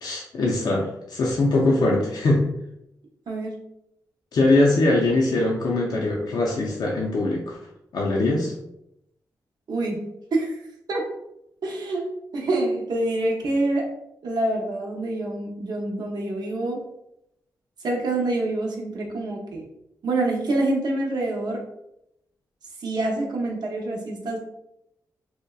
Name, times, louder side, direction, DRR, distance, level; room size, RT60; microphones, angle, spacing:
voice 1, 0.0-2.5 4.3-7.6 7.9-8.5, left 2 dB, 65° left, -3 dB, 0.4 m, -22 dB
voice 2, 3.3-3.6 9.7-10.6 10.9-11.0 11.6-12.1 12.3-13.9 14.2-16.8 17.8-19.6 20.0-21.6 22.8-24.4, right 2 dB, 70° right, -1 dB, 0.7 m, -26 dB
2.7 x 2.1 x 2.2 m, 0.82 s
cardioid pair, 60°, 7 cm